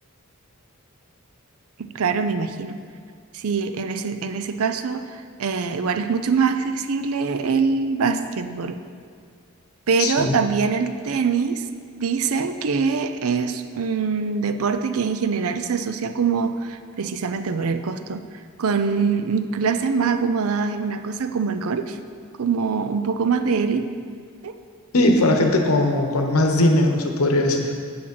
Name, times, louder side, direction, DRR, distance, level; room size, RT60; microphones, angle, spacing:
voice 1, 1.8-2.8 3.3-8.8 9.9-11.6 12.0-18.3 18.6-22.0 22.4-23.8 24.4-24.5, right 5 dB, 75° right, 9 dB, 0.5 m, -24 dB
voice 2, 10.0-10.4 24.9-27.7, left 1 dB, 80° left, 3 dB, 1.0 m, -19 dB
7.7 x 6.1 x 6.0 m, 2.1 s
head